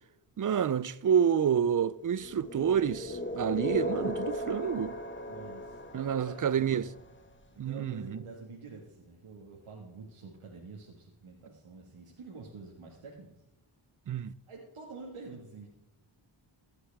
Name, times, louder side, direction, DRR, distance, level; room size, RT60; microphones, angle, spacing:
voice 1, 0.4-4.9 5.9-6.8 7.6-8.2 14.1-14.3, right 8 dB, 40° right, 0.5 m, -28 dB
sound 1, 2.2-7.2, left 1 dB, 25° left, 1.5 m, -37 dB
voice 2, 5.3-6.9 7.6-13.3 14.5-15.7, right 4 dB, 75° right, 1.9 m, -47 dB
15.0 x 8.1 x 3.5 m
cardioid pair, 55°, 50 cm